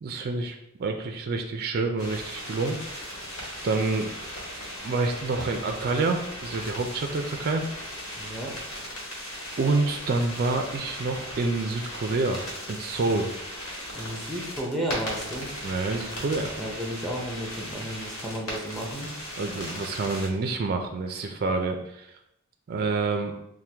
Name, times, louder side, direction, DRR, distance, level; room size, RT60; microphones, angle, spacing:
voice 1, 0.0-3.0 3.6-4.1 4.8-7.6 9.6-12.4 12.7-13.3 15.6-16.5 19.4-22.1 22.7-23.3, right 3 dB, 45° right, 5 dB, 0.3 m, -27 dB
sound 1, 2.0-20.3, equal, 65° left, 1.4 m, -38 dB
voice 2, 8.2-8.5 13.9-15.5 16.6-19.1, right 1 dB, ahead, -2 dB, 0.6 m, -33 dB
4.4 x 2.1 x 3.3 m, 0.79 s
head